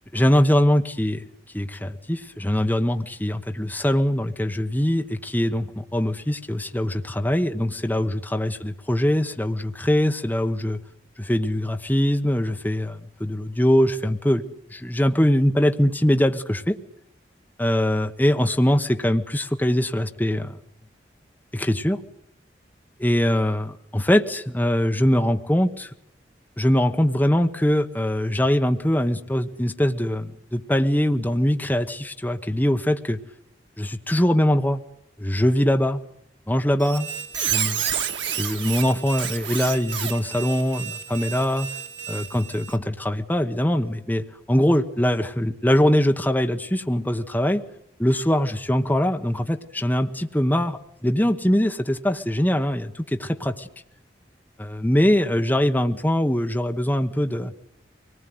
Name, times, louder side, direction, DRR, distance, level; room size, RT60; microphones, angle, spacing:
voice 1, 0.1-1.2 1.5-10.8 11.2-14.4 14.7-16.8 17.6-20.6 21.5-22.0 23.0-25.9 26.6-33.2 33.8-34.8 35.2-36.0 36.5-37.1 37.5-37.8 38.4-41.7 42.1-47.6 48.0-53.7 54.6-57.5, equal, 10° left, 5 dB, 0.9 m, -22 dB
Squeak, 36.8-42.8, right 9 dB, 85° right, 1.9 m, -30 dB
24.0 x 19.0 x 9.3 m, 0.76 s
head